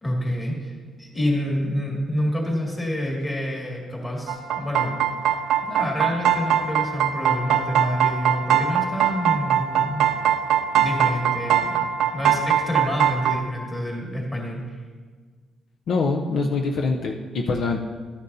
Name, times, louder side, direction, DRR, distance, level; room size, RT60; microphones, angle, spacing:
voice 1, 0.0-5.0 5.6-10.1 10.8-11.8 12.1-14.8, left 1 dB, 15° left, -2 dB, 2.2 m, -28 dB
sound 1, 4.3-13.4, right 9 dB, 85° right, 0.6 m, -21 dB
voice 2, 15.9-17.8, left 3 dB, 60° left, 2 dB, 0.6 m, -24 dB
13.0 x 10.5 x 2.7 m, 1.5 s
cardioid pair, 160°, 0 cm